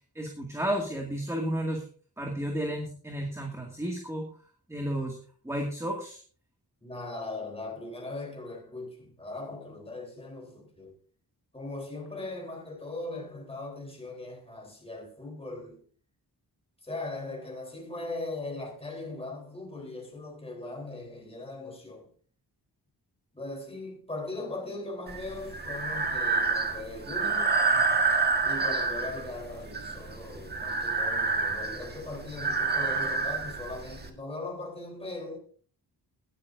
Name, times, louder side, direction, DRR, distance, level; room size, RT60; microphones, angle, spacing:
voice 1, 0.2-1.8 2.2-4.2 4.7-5.2 5.4-6.2, right 1 dB, 5° right, 2.1 m, -32 dB
voice 2, 6.8-11.0 11.5-15.8 16.8-22.1 23.3-27.5 28.4-35.4, left 2 dB, 15° left, 3.6 m, -39 dB
Breathing, 25.1-34.1, right 4 dB, 25° right, 1.6 m, -28 dB
20.0 x 11.5 x 2.6 m
wide cardioid pair, 130°, 39 cm